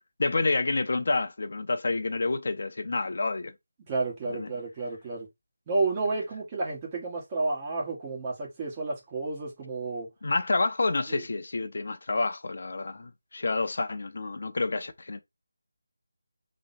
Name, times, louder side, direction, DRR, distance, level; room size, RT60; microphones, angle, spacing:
voice 1, 0.2-3.5 4.3-4.5 10.2-15.2, left 3 dB, 60° left, 0.7 m, -28 dB
voice 2, 3.9-5.3 5.7-10.1 11.1-11.2, right 3 dB, 20° right, 1.4 m, -31 dB
3.1 x 3.1 x 4.1 m
figure-of-eight pair, 165°, 0 cm